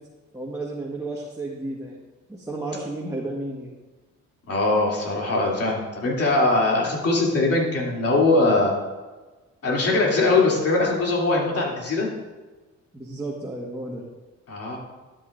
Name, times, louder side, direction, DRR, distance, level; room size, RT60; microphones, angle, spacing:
voice 1, 0.3-1.9 2.3-3.7 12.9-14.0, right 2 dB, 10° right, -4 dB, 1.5 m, -32 dB
voice 2, 4.5-8.7 9.6-12.1 14.5-14.8, left 2 dB, 50° left, -3 dB, 3.0 m, -21 dB
12.0 x 9.2 x 2.6 m, 1.2 s
cardioid pair, 90°, 30 cm